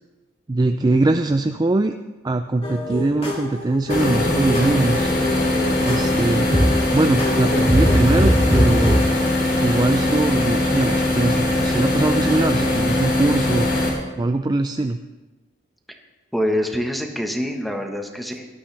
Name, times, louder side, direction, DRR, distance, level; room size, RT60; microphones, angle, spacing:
voice 1, 0.5-2.0 2.2-5.1 5.8-6.5 6.9-9.0 9.6-13.7 14.2-15.0, right 2 dB, 20° right, 7 dB, 0.4 m, -21 dB
sound 1, 2.6-9.0, equal, 30° left, 2.6 m, -22 dB
sound 2, 3.9-13.9, left 1 dB, 50° left, 3.7 m, -21 dB
voice 2, 16.3-18.5, equal, ahead, 3 dB, 1.3 m, -25 dB
18.5 x 13.0 x 3.4 m, 1.2 s
head